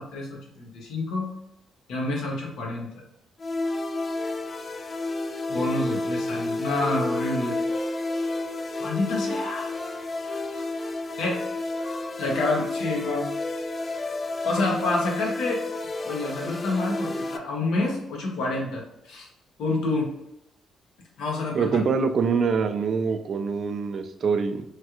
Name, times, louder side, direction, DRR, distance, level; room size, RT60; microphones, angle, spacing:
voice 1, 0.0-1.3 1.9-3.0 5.5-7.6 8.8-9.7 11.2-11.4 11.8-13.3 14.4-15.6 16.0-19.3 19.6-20.1 21.2-21.8, left 2 dB, 80° left, -1 dB, 0.9 m, -28 dB
sound 1, 3.4-17.4, left 2 dB, 30° left, 0.3 m, -30 dB
voice 2, 21.5-24.6, right 5 dB, 55° right, 8 dB, 0.3 m, -24 dB
3.2 x 2.3 x 2.9 m, 0.84 s
cardioid pair, 90°, 0 cm